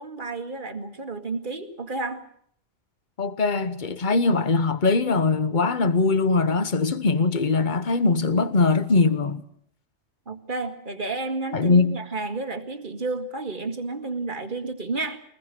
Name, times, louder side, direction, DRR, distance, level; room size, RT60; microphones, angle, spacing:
voice 1, 0.0-2.2 10.3-15.2, right 3 dB, 40° right, 2.0 m, -31 dB
voice 2, 3.2-9.4 11.5-12.0, left 3 dB, 40° left, 1.3 m, -21 dB
23.5 x 20.0 x 7.6 m
omnidirectional pair, 1.3 m